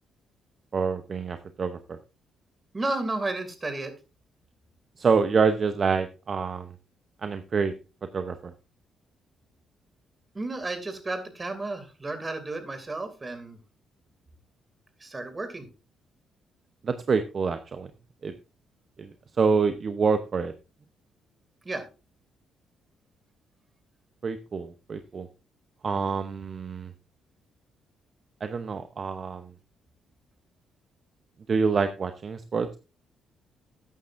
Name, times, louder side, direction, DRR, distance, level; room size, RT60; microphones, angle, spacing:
voice 1, 0.7-2.0 5.0-6.7 7.2-7.7 8.1-8.5 16.8-17.9 18.2-18.3 19.0-20.5 24.2-25.3 25.8-26.9 28.4-29.5 31.5-32.7, right 5 dB, 45° right, 9 dB, 0.8 m, -27 dB
voice 2, 2.7-3.9 10.3-13.6 15.0-15.7 21.6-21.8, right 2 dB, 25° right, 9 dB, 2.6 m, -32 dB
13.0 x 9.2 x 2.6 m, 0.30 s
cardioid pair, 90°, 0 cm